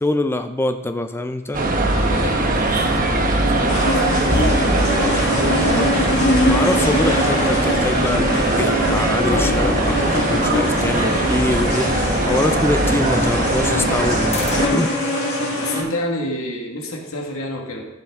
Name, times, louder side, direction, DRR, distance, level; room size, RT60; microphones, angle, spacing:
voice 1, 0.0-1.7 6.4-8.3 8.5-15.0, left 2 dB, 10° left, 8 dB, 0.4 m, -24 dB
sound 1, 1.5-14.7, right 2 dB, 40° right, 1.0 m, -20 dB
voice 2, 1.9-4.4 15.4-17.9, left 1 dB, 80° left, 1 dB, 1.8 m, -29 dB
sound 2, 3.7-15.8, left 1 dB, 55° left, 2.8 m, -23 dB
sound 3, 4.3-7.1 9.3-12.0 14.3-14.9, left 1 dB, 30° left, 0.7 m, -27 dB
14.5 x 5.4 x 3.6 m, 1.1 s
head